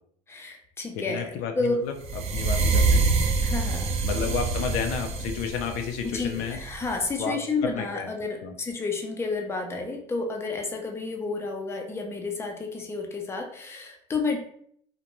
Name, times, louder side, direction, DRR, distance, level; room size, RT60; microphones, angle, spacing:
voice 1, 0.3-1.7 3.4-4.0 6.0-14.4, left 3 dB, 20° left, 2 dB, 0.5 m, -31 dB
voice 2, 0.9-1.9 2.3-3.1 4.0-6.6 7.2-7.4 7.6-8.1 8.4-8.5, left 7 dB, 85° left, 5 dB, 0.4 m, -31 dB
sound 1, 2.0-7.0, right 3 dB, 45° right, 0.5 m, -26 dB
2.5 x 2.1 x 2.9 m, 0.64 s
cardioid pair, 110°, 14 cm